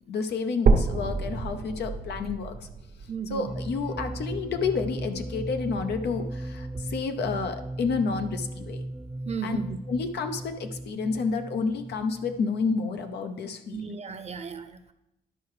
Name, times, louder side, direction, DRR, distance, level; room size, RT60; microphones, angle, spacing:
voice 1, 0.1-2.7 3.3-8.8 9.4-9.6 9.9-13.9, left 5 dB, 85° left, 7 dB, 0.8 m, -30 dB
sound 1, 0.7-4.7 5.2-5.3 5.9-6.0 6.3-6.4 7.2-7.3, right 4 dB, 65° right, 0.9 m, -28 dB
voice 2, 3.1-3.5 9.3-9.8 13.7-14.9, right 6 dB, 40° right, 10 dB, 0.8 m, -35 dB
sound 2, 3.5-13.1, right 1 dB, 5° right, 0.4 m, -37 dB
11.0 x 4.6 x 4.8 m, 0.87 s
cardioid pair, 75°, 17 cm